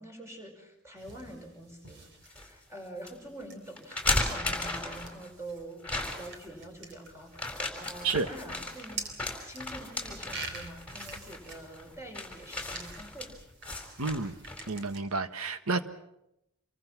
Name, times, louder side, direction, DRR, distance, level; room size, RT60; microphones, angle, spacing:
voice 1, 0.0-9.1 9.5-13.3 13.9-14.0, right 1 dB, 15° right, 2 dB, 5.4 m, -46 dB
sound 1, 1.0-15.0, right 3 dB, 55° right, 3.9 m, -47 dB
sound 2, 1.9-2.5 3.0-3.1 3.8-5.3 5.8-6.5 7.3-14.8, left 2 dB, 5° left, 4.3 m, -35 dB
voice 2, 14.0-14.3 14.7-15.8, right 3 dB, 90° right, 10 dB, 1.5 m, -30 dB
27.0 x 23.5 x 6.1 m, 0.84 s
head